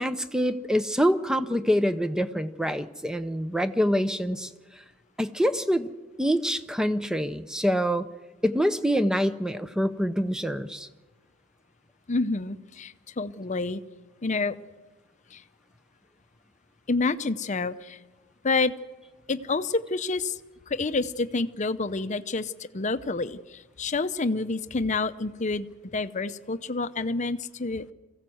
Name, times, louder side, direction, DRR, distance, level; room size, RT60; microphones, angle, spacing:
voice 1, 0.0-4.5 5.2-5.9 6.2-8.1 8.4-10.9, equal, 5° right, 12 dB, 0.6 m, -25 dB
voice 2, 12.1-13.8 14.2-14.6 15.3-15.4 16.9-18.0 18.4-18.7 19.3-20.4 20.7-27.9, left 3 dB, 35° left, 12 dB, 0.7 m, -28 dB
23.5 x 15.5 x 7.8 m, 1.3 s
head